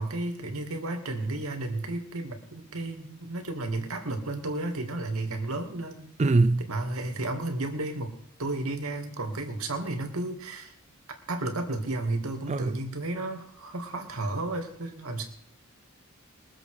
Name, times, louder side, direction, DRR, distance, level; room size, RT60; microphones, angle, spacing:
voice 1, 0.0-6.1 6.7-8.1 8.4-10.7 11.3-15.3, right 2 dB, 75° right, 2.4 m, -32 dB
voice 2, 6.2-6.6 12.5-12.8, right 3 dB, 30° right, 0.4 m, -22 dB
22.0 x 7.7 x 5.0 m
head